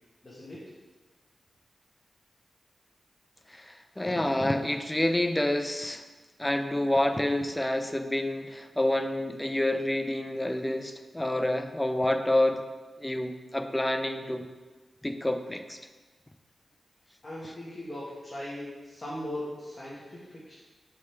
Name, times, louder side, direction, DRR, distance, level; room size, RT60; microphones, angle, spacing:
voice 1, 0.2-0.6 17.2-20.6, left 1 dB, 35° left, -8 dB, 1.5 m, -39 dB
voice 2, 3.5-6.0 6.4-12.6 13.0-14.5 15.0-15.8, left 1 dB, 15° left, 7 dB, 0.5 m, -28 dB
6.1 x 3.8 x 4.5 m, 1.3 s
cardioid pair, 70°, 0 cm